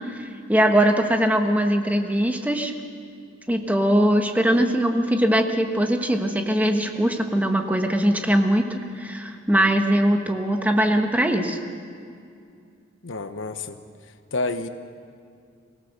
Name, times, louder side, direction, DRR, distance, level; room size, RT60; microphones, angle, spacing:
voice 1, 0.2-2.7 3.5-11.6, right 1 dB, 10° right, 4 dB, 1.3 m, -21 dB
voice 2, 13.0-13.8 14.3-14.7, left 3 dB, 85° left, 9 dB, 1.1 m, -28 dB
25.0 x 17.0 x 6.7 m, 2.4 s
head